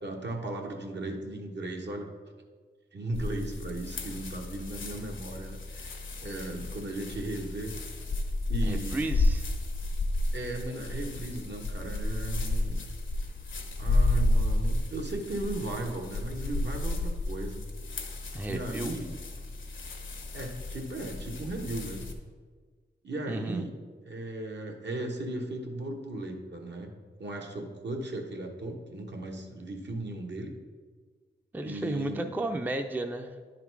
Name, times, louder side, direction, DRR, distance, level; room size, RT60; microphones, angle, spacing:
voice 1, 0.0-2.1 2.9-7.8 8.5-9.1 10.3-12.8 13.8-17.6 18.4-19.1 20.3-22.1 23.0-23.7 24.0-26.9 27.2-30.5 31.6-32.3, right 2 dB, 65° right, 1 dB, 1.1 m, -36 dB
sound 1, 3.1-22.1, left 2 dB, 85° left, 0.9 m, -32 dB
voice 2, 8.6-9.4 18.3-18.9 23.3-23.7 31.5-33.3, right 2 dB, 10° right, 6 dB, 0.4 m, -33 dB
10.0 x 3.9 x 4.6 m, 1.5 s
wide cardioid pair, 70°, 19 cm